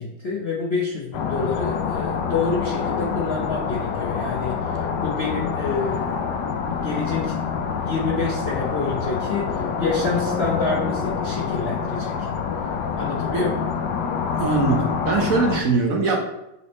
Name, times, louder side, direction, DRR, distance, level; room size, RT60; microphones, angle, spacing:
voice 1, 0.0-6.3 6.7-7.3 7.8-12.1 13.0-13.7, left 4 dB, 55° left, -4 dB, 0.7 m, -28 dB
sound 1, 1.1-15.6, left 6 dB, 75° left, 1.1 m, -26 dB
voice 2, 14.4-16.2, right 3 dB, 55° right, 0 dB, 1.1 m, -22 dB
7.1 x 3.4 x 4.2 m, 0.87 s
omnidirectional pair, 2.0 m